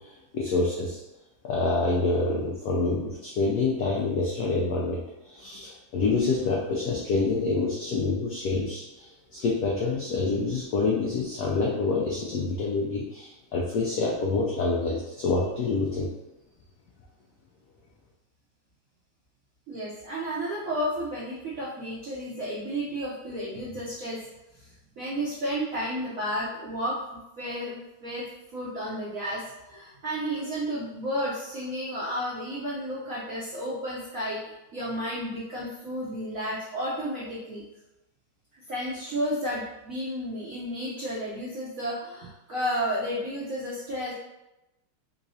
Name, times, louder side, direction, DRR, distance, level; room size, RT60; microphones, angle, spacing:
voice 1, 0.3-1.0 1.4-16.1, left 3 dB, 90° left, -3 dB, 0.8 m, -27 dB
voice 2, 19.7-24.2 25.0-28.2 28.5-29.4 29.7-34.4 34.7-37.6 38.7-44.1, equal, 75° right, -7 dB, 0.7 m, -32 dB
3.7 x 3.0 x 2.7 m, 0.95 s
omnidirectional pair, 2.3 m